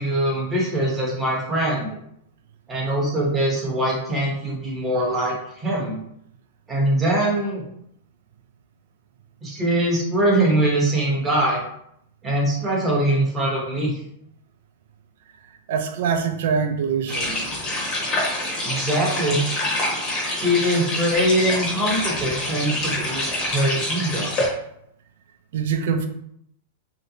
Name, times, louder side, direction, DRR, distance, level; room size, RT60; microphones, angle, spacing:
voice 1, 0.0-2.0 2.7-6.0 6.7-7.6 9.4-11.6 12.2-14.0 18.6-19.4 20.4-24.3, right 1 dB, 10° right, -4 dB, 0.9 m, -22 dB
voice 2, 15.7-17.5 25.5-26.1, right 6 dB, 60° right, 7 dB, 0.4 m, -24 dB
sound 1, 17.1-24.5, left 1 dB, 30° left, 1.0 m, -26 dB
3.1 x 2.8 x 2.7 m, 0.73 s
supercardioid pair, 165°, 0 cm